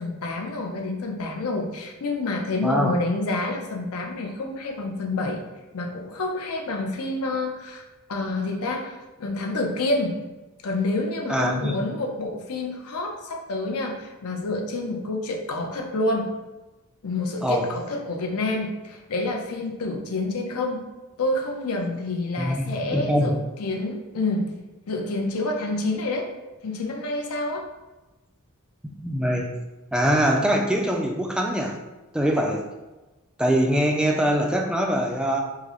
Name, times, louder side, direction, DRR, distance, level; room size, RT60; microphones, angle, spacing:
voice 1, 0.0-5.4 5.7-7.8 8.1-8.9 9.2-10.2 10.6-16.3 17.0-20.8 21.2-23.3 23.6-24.5 24.9-26.3 26.6-27.6, left 2 dB, 80° left, 2 dB, 0.6 m, -28 dB
voice 2, 11.3-11.8 17.4-17.7 22.4-23.3 29.0-29.5 29.9-31.8 32.1-32.6 33.4-35.4, equal, 5° right, 1 dB, 0.3 m, -23 dB
4.7 x 2.1 x 2.9 m, 1.1 s
head